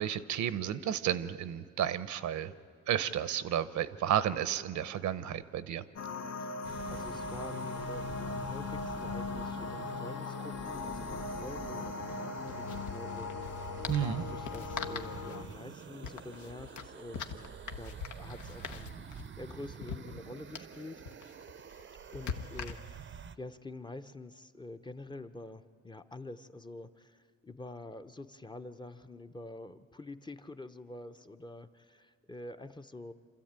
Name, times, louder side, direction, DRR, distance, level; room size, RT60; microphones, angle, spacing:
voice 1, 0.0-2.5 2.9-5.8 13.9-14.2, right 10 dB, 70° right, 14 dB, 0.8 m, -32 dB
sound 1, 6.0-15.4, left 4 dB, 55° left, 1.0 m, -39 dB
sound 2, 6.6-23.4, right 7 dB, 40° right, 0.6 m, -48 dB
voice 2, 6.9-13.7 14.0-21.0 22.1-33.1, left 2 dB, 15° left, 8 dB, 0.7 m, -47 dB
sound 3, 10.0-10.1 10.4-10.5 12.0-23.2, left 6 dB, 75° left, 1.2 m, -44 dB
27.0 x 13.5 x 8.8 m, 2.3 s
cardioid pair, 90°, 30 cm